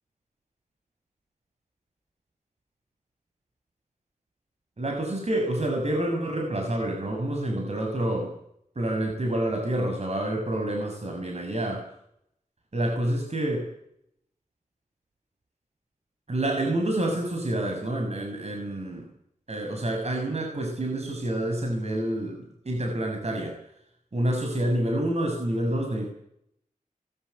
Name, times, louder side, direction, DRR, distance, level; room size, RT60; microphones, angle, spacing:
voice 1, 4.8-8.3 8.8-11.8 12.7-13.7 16.3-19.0 19.5-23.5 24.1-26.1, right 1 dB, 50° right, 2 dB, 7.1 m, -28 dB
22.5 x 21.5 x 8.5 m, 0.75 s
wide cardioid pair, 80°, 14 cm